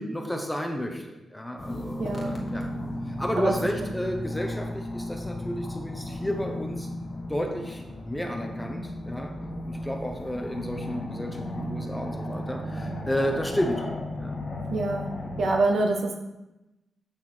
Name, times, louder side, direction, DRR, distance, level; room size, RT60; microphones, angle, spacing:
voice 1, 0.0-2.7 3.1-6.9 7.3-9.3 9.7-13.8 14.2-14.4, equal, 5° left, 2 dB, 0.9 m, -32 dB
sound 1, 1.6-15.5, left 1 dB, 30° left, 1.6 m, -35 dB
voice 2, 2.0-2.4 3.4-3.9 14.7-15.1 15.4-16.2, right 2 dB, 60° right, 2 dB, 1.1 m, -26 dB
8.2 x 5.8 x 4.4 m, 0.99 s
wide cardioid pair, 145°, 0 cm